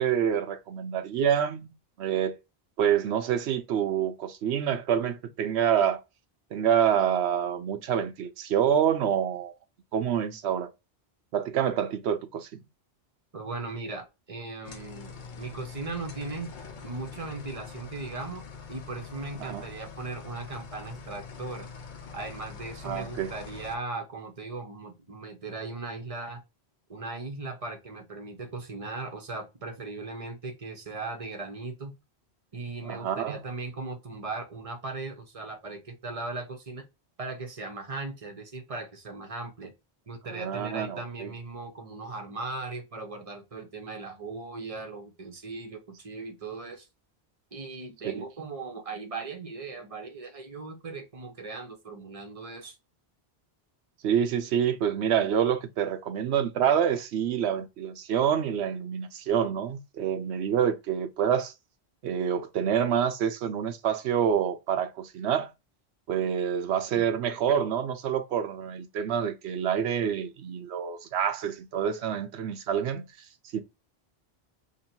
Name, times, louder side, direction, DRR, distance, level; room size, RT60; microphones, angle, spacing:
voice 1, 0.0-1.7 2.0-2.4 2.8-6.0 6.5-9.5 9.9-10.7 11.3-12.7 19.4-19.7 22.8-23.4 32.8-33.4 40.3-41.3 48.0-48.2 54.0-61.5 62.0-65.5 66.1-73.1 73.5-73.6, right 8 dB, 85° right, 0.9 m, -27 dB
voice 2, 13.3-16.6 16.8-21.7 22.1-26.4 26.9-31.9 32.5-36.8 37.2-39.7 40.1-46.9 47.5-52.8 66.9-67.0, right 3 dB, 35° right, 0.9 m, -38 dB
sound 1, 14.6-23.8, left 5 dB, 55° left, 0.8 m, -44 dB
3.0 x 2.7 x 4.4 m
omnidirectional pair, 1.1 m